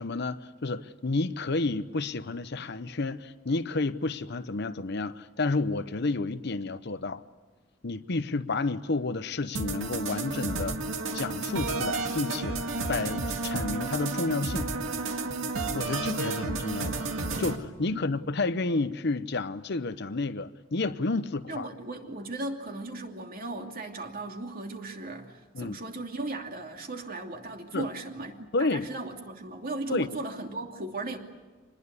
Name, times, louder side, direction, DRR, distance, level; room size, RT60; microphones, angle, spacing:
voice 1, 0.0-7.2 7.8-10.8 11.1-12.6 12.9-14.7 15.7-17.0 17.4-21.7 25.5-25.8 27.7-27.9 28.5-28.9 29.9-30.1, left 3 dB, 60° left, 0.8 m, -30 dB
sound 1, 9.5-17.6, right 3 dB, 85° right, 2.1 m, -31 dB
voice 2, 21.5-31.2, right 2 dB, 45° right, 2.8 m, -37 dB
26.0 x 20.5 x 8.4 m
head